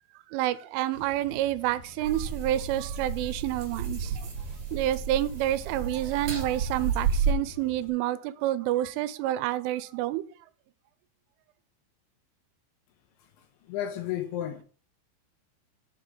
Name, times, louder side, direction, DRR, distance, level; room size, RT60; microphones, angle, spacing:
voice 1, 0.3-4.3 4.7-10.2, right 14 dB, 85° right, 3.1 m, -29 dB
sound 1, 0.8-7.9, left 2 dB, 35° left, 1.8 m, -49 dB
sound 2, 2.0-7.3, right 6 dB, 45° right, 3.2 m, -31 dB
voice 2, 13.7-14.6, left 11 dB, 75° left, 3.5 m, -32 dB
8.1 x 4.4 x 7.0 m
omnidirectional pair, 5.6 m